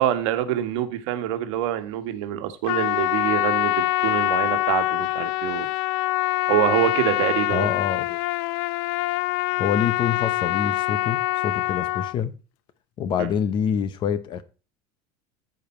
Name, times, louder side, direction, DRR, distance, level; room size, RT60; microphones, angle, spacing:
voice 1, 0.0-5.7 6.5-7.7 13.2-13.3, right 12 dB, 85° right, 1.5 m, -25 dB
Trumpet, 2.6-12.1, left 19 dB, 65° left, 0.4 m, -24 dB
voice 2, 7.5-8.2 9.6-12.3 13.0-14.4, left 8 dB, 30° left, 0.8 m, -26 dB
14.5 x 5.2 x 4.3 m
cardioid pair, 170°, 15 cm